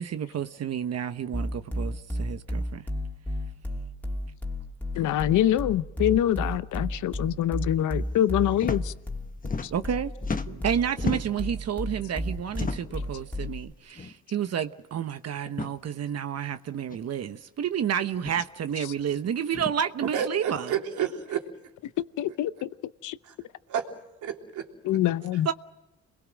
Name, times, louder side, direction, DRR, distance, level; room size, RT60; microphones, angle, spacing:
voice 1, 0.0-2.9 9.7-10.1 10.6-20.7 25.4-25.5, right 8 dB, 55° right, 1.1 m, -30 dB
sound 1, 1.3-13.7, equal, 5° left, 3.0 m, -32 dB
voice 2, 5.0-8.9 9.6-9.7 22.2-22.7 23.0-23.2 24.8-25.5, left 12 dB, 75° left, 0.8 m, -25 dB
sound 2, 8.5-8.8 9.1-10.0 10.2-11.5 12.5-13.0 14.0-14.1 14.5-14.6 15.4-15.7 16.9-17.0 18.1-18.4 19.5-19.8, left 4 dB, 25° left, 1.3 m, -34 dB
voice 3, 20.1-21.4 23.2-23.3 23.7-23.9 24.2-24.7, right 8 dB, 80° right, 3.5 m, -30 dB
29.0 x 22.0 x 6.3 m
cardioid pair, 90°, 30 cm